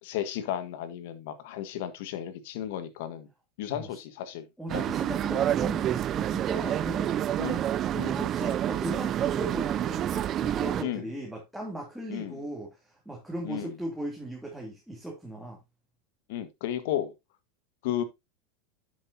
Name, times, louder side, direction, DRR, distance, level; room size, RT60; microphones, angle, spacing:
voice 1, 0.0-3.3 3.6-4.9 7.4-7.7 7.9-8.2 10.8-11.0 12.1-12.4 13.4-13.7 16.3-17.1 17.8-18.0, left 11 dB, 70° left, 1.6 m, -34 dB
voice 2, 4.6-7.3 8.0-15.6, right 1 dB, ahead, 3.0 m, -37 dB
sound 1, 4.7-10.8, right 11 dB, 40° right, 0.4 m, -28 dB
10.5 x 7.8 x 2.8 m
hypercardioid pair, 110°, 0 cm